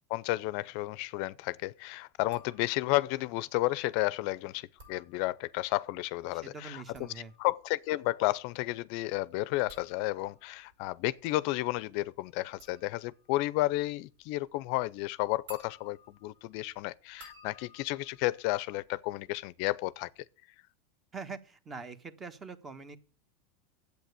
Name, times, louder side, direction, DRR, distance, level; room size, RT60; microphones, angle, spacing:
voice 1, 0.1-6.8 7.4-20.1, left 19 dB, 60° left, 0.5 m, -32 dB
sound 1, 2.3-3.1 4.6-5.7 6.7-19.4 19.7-20.2, equal, 80° right, 5.5 m, -58 dB
voice 2, 6.3-7.3 21.1-23.0, right 4 dB, 25° right, 1.3 m, -44 dB
9.1 x 8.2 x 8.2 m
supercardioid pair, 115°, 0 cm